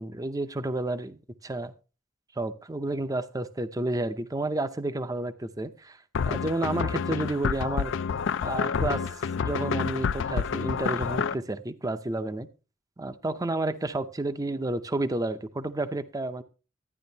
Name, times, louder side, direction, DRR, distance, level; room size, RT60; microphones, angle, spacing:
voice 1, 0.0-1.7 2.4-6.0 6.2-7.9 8.4-9.1 9.4-12.5 13.0-16.4, right 2 dB, 20° right, 0.5 m, -31 dB
sound 1, 6.1-11.3, left 6 dB, 65° left, 0.4 m, -28 dB
12.0 x 9.9 x 2.7 m
head